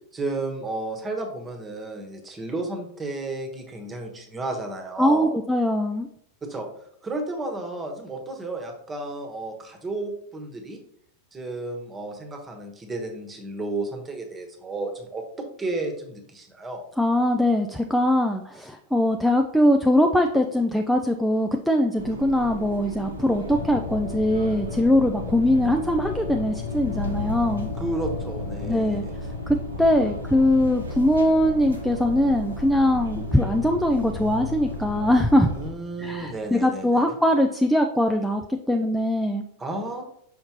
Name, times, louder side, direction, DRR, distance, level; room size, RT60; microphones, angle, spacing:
voice 1, 0.1-5.4 6.4-6.7 7.0-10.8 11.3-16.8 27.8-29.1 35.5-37.2 39.6-40.0, right 2 dB, 15° right, 3 dB, 1.3 m, -32 dB
voice 2, 5.0-6.1 17.0-27.7 28.7-29.0 29.5-35.5 36.0-38.4 38.7-39.4, left 1 dB, ahead, 3 dB, 0.4 m, -21 dB
sound 1, 22.0-35.7, left 1 dB, 75° right, 1.1 m, -36 dB
sound 2, 23.5-36.8, left 4 dB, 55° left, 0.8 m, -36 dB
6.3 x 5.7 x 2.9 m, 0.71 s
figure-of-eight pair, 90°, 0 cm